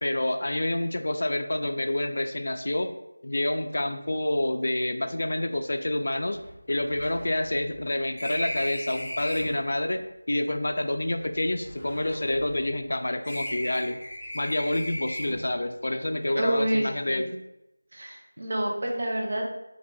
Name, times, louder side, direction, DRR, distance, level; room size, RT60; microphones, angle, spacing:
voice 1, 0.0-2.9 3.2-6.4 6.7-10.0 10.3-14.0 14.3-17.3, left 1 dB, 50° left, 7 dB, 0.3 m, -28 dB
sound 1, 5.5-5.6 5.9-6.0 6.3-9.6 10.5-12.9 13.2-15.6, left 1 dB, 5° left, 0.6 m, -37 dB
voice 2, 16.4-17.3 17.9-19.5, right 1 dB, 40° right, -1 dB, 0.6 m, -28 dB
3.2 x 2.2 x 3.7 m, 0.91 s
figure-of-eight pair, 170°, 0 cm